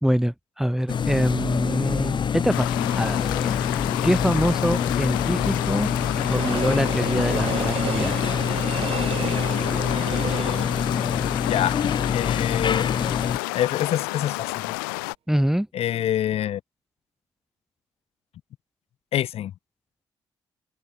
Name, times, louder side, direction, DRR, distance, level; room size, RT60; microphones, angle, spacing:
voice 1, 0.0-2.7 3.0-3.8 4.0-5.9 6.2-8.1 15.3-15.7, equal, 5° right, 0.7 m, -24 dB
sound 1, 0.9-13.4, left 7 dB, 45° left, 0.7 m, -26 dB
sound 2, 2.5-15.2, left 28 dB, 90° left, 0.6 m, -30 dB
Train, 4.1-13.0 13.4-13.5, right 10 dB, 60° right, 0.9 m, -35 dB
voice 2, 11.5-11.8 12.1-12.9 13.5-14.7 15.7-16.6 19.1-19.5, left 11 dB, 70° left, 2.1 m, -26 dB
hypercardioid pair, 45°, 11 cm